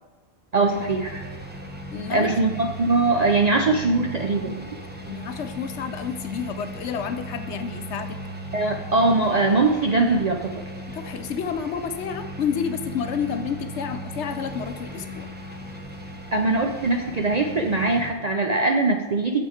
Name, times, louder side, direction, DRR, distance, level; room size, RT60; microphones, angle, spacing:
voice 1, 0.5-1.3 2.1-4.7 8.5-10.6 16.3-19.4, right 3 dB, 50° right, 3 dB, 0.5 m, -22 dB
sound 1, 0.7-18.1, right 1 dB, 10° right, 0.8 m, -37 dB
voice 2, 1.9-2.3 5.0-8.2 10.9-15.3, left 7 dB, 65° left, 8 dB, 0.9 m, -30 dB
7.9 x 7.1 x 4.3 m, 1.3 s
omnidirectional pair, 1.3 m